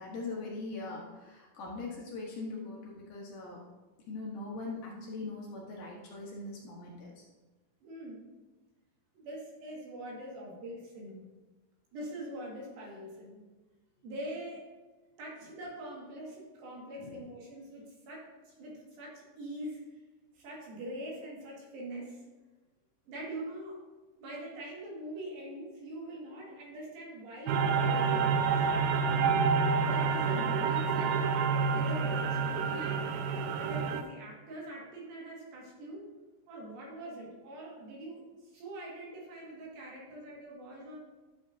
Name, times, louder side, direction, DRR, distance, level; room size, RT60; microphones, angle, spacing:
voice 1, 0.0-3.6 4.1-7.2 17.0-17.1, left 3 dB, 65° left, -3 dB, 2.3 m, -41 dB
voice 2, 7.8-8.2 9.1-11.3 11.9-13.5 14.0-14.7 15.2-19.9 20.4-22.2 23.1-23.8 24.2-28.7 29.7-31.3 31.7-36.1 36.5-41.0, right 1 dB, 70° right, -3 dB, 3.6 m, -43 dB
sound 1, 27.5-34.0, right 5 dB, 85° right, 1.8 m, -28 dB
11.5 x 7.2 x 2.7 m, 1.2 s
omnidirectional pair, 4.5 m